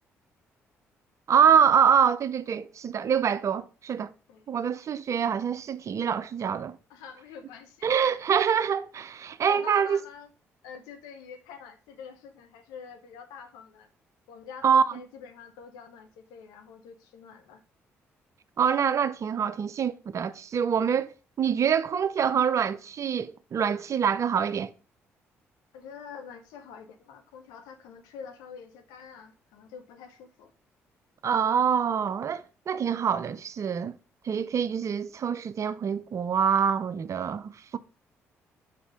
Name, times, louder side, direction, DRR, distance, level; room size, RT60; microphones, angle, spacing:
voice 1, 1.3-4.1 4.5-6.8 7.8-10.0 14.6-14.8 18.6-21.1 21.4-24.7 31.2-34.0 34.2-37.8, right 7 dB, 50° right, 0.5 m, -25 dB
voice 2, 6.9-8.2 9.5-10.3 10.6-13.9 14.3-17.6 25.7-30.5, left 6 dB, 75° left, 0.9 m, -46 dB
5.9 x 4.2 x 4.9 m
hypercardioid pair, 45°, 7 cm